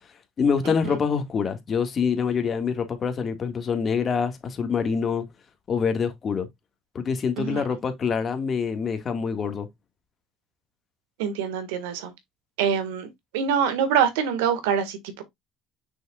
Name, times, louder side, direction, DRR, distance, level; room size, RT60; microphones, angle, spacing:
voice 1, 0.4-5.2 5.7-6.5 6.9-9.7, left 6 dB, 40° left, 1.8 m, -25 dB
voice 2, 11.2-12.1 12.6-15.2, right 8 dB, 90° right, 1.7 m, -25 dB
6.4 x 6.1 x 2.4 m
supercardioid pair, 85°, 0 cm